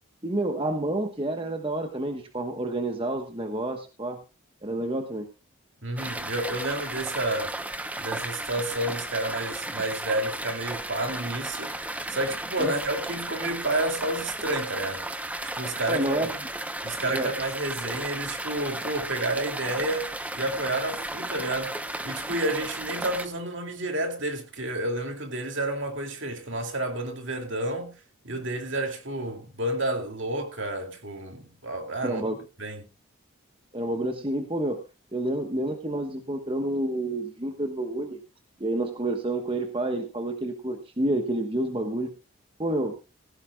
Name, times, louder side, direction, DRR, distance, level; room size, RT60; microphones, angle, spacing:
voice 1, 0.2-4.2 4.6-5.3 12.6-12.7 15.9-16.3 17.1-17.3 32.0-32.4 33.7-34.8 35.1-38.2 38.6-42.1 42.6-42.9, right 1 dB, 25° right, 1.2 m, -29 dB
voice 2, 5.8-7.5 8.0-11.8 12.1-15.1 15.5-16.2 16.8-21.7 22.0-27.9 28.2-32.2 32.6-32.8, right 1 dB, 60° right, 2.6 m, -30 dB
sound 1, 6.0-23.3, right 1 dB, 5° right, 0.8 m, -34 dB
16.5 x 15.0 x 2.3 m
head